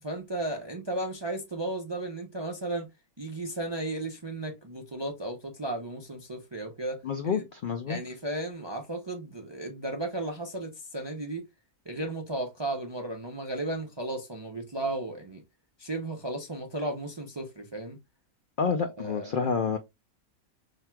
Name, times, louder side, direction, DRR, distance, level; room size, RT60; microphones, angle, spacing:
voice 1, 0.0-2.9 3.2-7.4 7.9-11.4 11.9-15.4 15.8-18.0 19.0-19.5, right 2 dB, 40° right, 0.4 m, -34 dB
voice 2, 7.0-8.0 18.6-19.8, left 6 dB, 80° left, 0.4 m, -28 dB
5.7 x 2.8 x 2.2 m
omnidirectional pair, 1.6 m